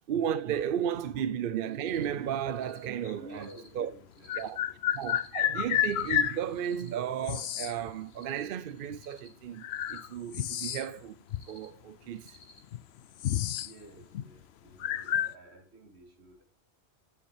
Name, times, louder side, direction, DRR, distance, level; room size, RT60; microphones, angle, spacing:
voice 1, 0.1-3.5 3.8-3.9 4.4-4.6 4.9-11.2 11.5-12.4, right 9 dB, 65° right, 0.7 m, -34 dB
Cricket, 1.7-2.1 2.5-2.9 3.3-3.7 4.1-4.5 4.9-5.3 5.7-6.1 6.5-6.9 7.3-7.7 8.1-8.5 8.9-9.3 9.7-10.1 10.5-10.8 11.3-11.7 12.1-12.6, left 2 dB, 50° left, 2.2 m, -56 dB
sound 1, 3.0-3.1 4.2-6.4 7.2-7.8 8.9-9.0 9.6-11.0 11.3-11.4 12.2-12.3 12.6-13.7 14.0-14.3 14.8-15.3, left 11 dB, 90° left, 0.8 m, -30 dB
voice 2, 3.2-5.3 13.6-16.4, right 1 dB, 90° right, 2.5 m, -52 dB
8.8 x 7.2 x 4.8 m
omnidirectional pair, 1.1 m